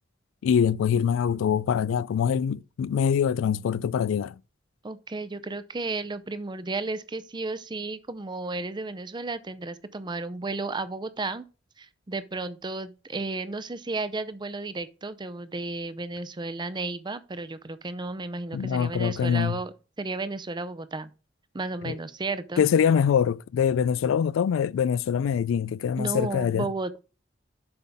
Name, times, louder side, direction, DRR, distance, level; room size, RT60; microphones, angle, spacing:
voice 1, 0.4-4.4 18.5-19.6 21.9-22.0 22.6-26.7, left 7 dB, 85° left, 0.3 m, -24 dB
voice 2, 4.8-11.5 11.8-21.1 21.5-22.6 26.0-27.0, right 3 dB, 25° right, 0.6 m, -33 dB
7.8 x 5.6 x 3.5 m
head